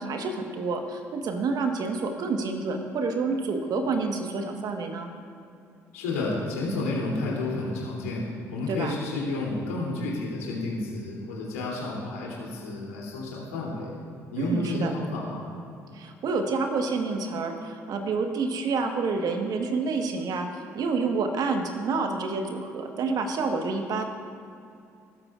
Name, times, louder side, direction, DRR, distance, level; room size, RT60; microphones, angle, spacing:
voice 1, 0.0-5.1 8.7-9.0 14.4-14.9 15.9-24.0, right 4 dB, 55° right, 4 dB, 1.4 m, -28 dB
voice 2, 5.9-13.9 14.3-15.4, left 2 dB, 85° left, -4 dB, 3.1 m, -31 dB
19.5 x 13.0 x 2.5 m, 2.5 s
hypercardioid pair, 50°, 8 cm